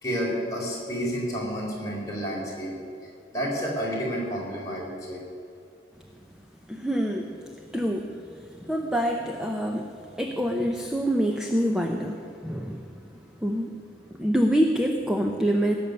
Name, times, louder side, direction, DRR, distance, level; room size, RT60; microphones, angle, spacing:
voice 1, 0.0-2.7 3.3-5.2, equal, 20° left, -4 dB, 4.2 m, -30 dB
voice 2, 6.7-7.4 7.7-8.3 8.6-9.9 10.2-12.9 13.4-13.8 14.2-15.7, equal, 5° right, 2 dB, 0.7 m, -26 dB
17.5 x 7.0 x 9.8 m, 2.5 s
head